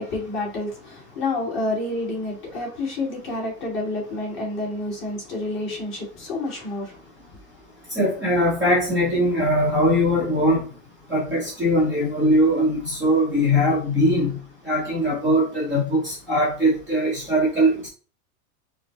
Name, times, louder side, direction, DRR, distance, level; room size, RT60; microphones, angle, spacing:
voice 1, 0.0-7.0, left 2 dB, 25° left, 1.6 m, -29 dB
voice 2, 8.0-10.6 11.1-14.3 14.6-17.9, equal, 5° right, 0.7 m, -21 dB
4.8 x 2.0 x 4.1 m
supercardioid pair, 170°, 45 cm